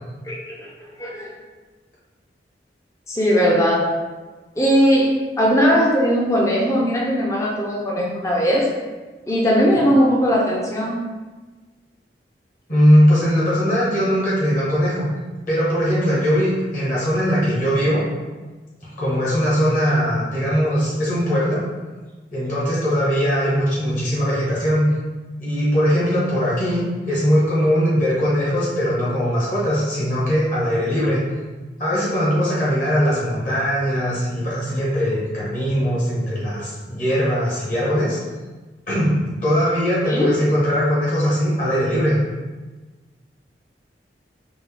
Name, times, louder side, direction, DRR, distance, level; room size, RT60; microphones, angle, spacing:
voice 1, 0.2-0.7 1.0-1.3 3.1-4.0 4.6-8.7 9.3-11.1 40.0-40.3, equal, 15° left, -3 dB, 0.5 m, -19 dB
voice 2, 12.7-15.1 15.5-18.0 19.0-21.6 22.3-24.8 25.4-31.2 31.8-38.2 38.9-39.1 39.4-42.2, equal, 45° left, -7 dB, 1.2 m, -20 dB
4.4 x 2.7 x 3.3 m, 1.3 s
head